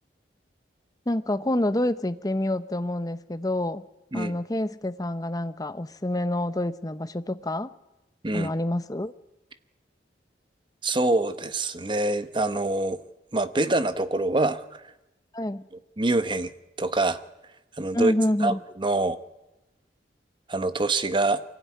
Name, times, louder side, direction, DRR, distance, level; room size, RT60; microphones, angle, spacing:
voice 1, 1.1-3.8 4.1-7.7 8.3-9.1 15.3-15.7 17.9-18.6, left 1 dB, 20° left, 12 dB, 0.8 m, -27 dB
voice 2, 10.8-13.0 13.3-14.8 16.0-16.5 16.8-17.2 17.8-18.1 18.4-19.2 20.5-21.4, right 2 dB, 25° right, 12 dB, 0.9 m, -25 dB
24.0 x 16.0 x 9.4 m, 0.98 s
head